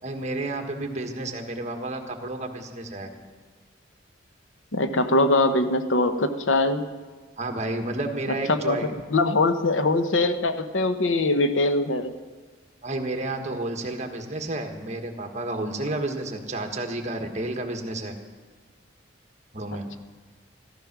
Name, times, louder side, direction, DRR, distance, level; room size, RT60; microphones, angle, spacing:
voice 1, 0.0-3.1 7.4-8.9 12.8-18.1 19.5-20.0, right 2 dB, 35° right, 4 dB, 1.5 m, -31 dB
voice 2, 4.7-6.9 8.5-8.8 9.1-12.2, left 2 dB, 80° left, 8 dB, 1.0 m, -22 dB
14.5 x 14.0 x 6.0 m, 1.4 s
head